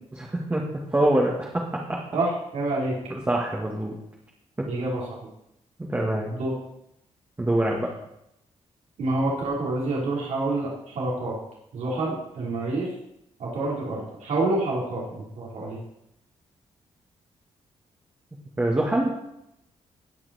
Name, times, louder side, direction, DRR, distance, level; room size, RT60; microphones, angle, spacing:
voice 1, 0.2-1.6 1.9-2.0 3.1-3.9 4.6-4.7 5.8-6.3 7.4-7.9 18.6-19.1, right 1 dB, 15° right, -3 dB, 1.8 m, -24 dB
voice 2, 2.1-3.0 4.6-5.0 6.3-6.5 9.0-11.3 11.7-12.9 13.4-15.8, right 2 dB, 80° right, -5 dB, 3.8 m, -27 dB
17.5 x 5.9 x 4.2 m, 0.82 s
cardioid pair, 110°, 12 cm